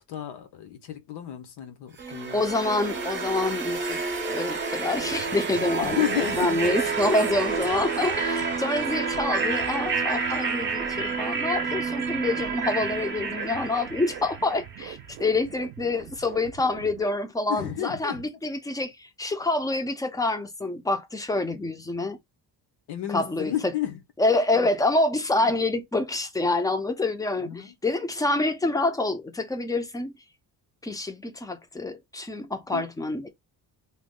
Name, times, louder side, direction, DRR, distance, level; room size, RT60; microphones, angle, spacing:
voice 1, 0.1-2.4 4.9-5.1 5.7-6.9 17.5-18.4 22.9-24.0 24.5-24.7 25.4-25.5 27.4-27.7 32.7-32.8, left 11 dB, 85° left, 0.9 m, -32 dB
sound 1, 2.0-14.9, right 4 dB, 30° right, 0.7 m, -29 dB
voice 2, 2.3-22.2 23.1-23.7 24.2-30.1 30.8-33.3, left 2 dB, 10° left, 0.3 m, -27 dB
sound 2, 4.9-17.1, right 10 dB, 70° right, 0.6 m, -43 dB
2.9 x 2.0 x 3.6 m
cardioid pair, 165°, 39 cm